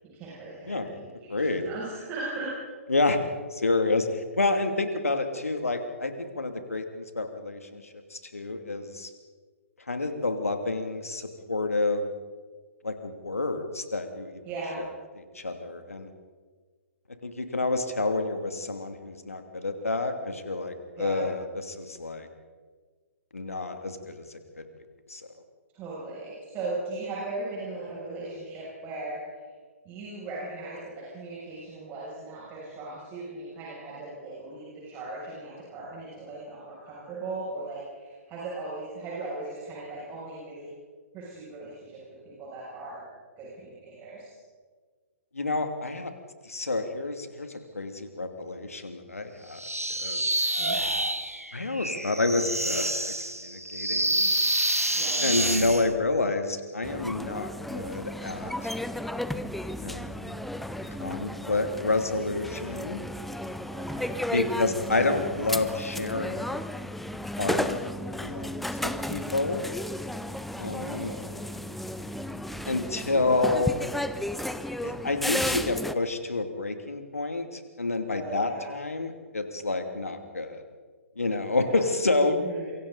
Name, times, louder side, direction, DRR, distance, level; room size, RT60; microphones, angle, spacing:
voice 1, 0.1-2.5 14.4-14.8 21.0-21.3 25.7-29.2 29.8-40.7 41.1-43.0 43.4-44.3 50.6-50.8 54.9-55.3 63.7-64.3 64.8-65.0 70.6-71.2 78.1-78.7 81.6-81.8 82.3-82.7, right 2 dB, 25° right, -6 dB, 7.3 m, -38 dB
voice 2, 1.3-1.6 2.9-3.2 3.5-7.8 8.1-9.1 9.9-12.1 12.8-14.4 15.2-16.1 17.2-22.3 23.3-24.3 24.6-24.7 25.1-25.3 45.3-46.1 46.4-49.6 50.0-50.5 51.5-53.1 53.4-54.3 55.2-58.7 59.8-60.4 60.9-63.0 64.3-66.6 67.4-67.9 68.2-68.5 68.8-69.6 70.6-71.1 72.7-73.8 74.8-80.6 81.2-82.4, left 3 dB, 75° left, 6 dB, 2.7 m, -29 dB
sound 1, 49.6-55.9, right 1 dB, 90° right, 1.7 m, -27 dB
sound 2, 56.8-76.0, left 1 dB, ahead, 0.6 m, -33 dB
27.5 x 24.0 x 4.1 m, 1.5 s
figure-of-eight pair, 125°, 8 cm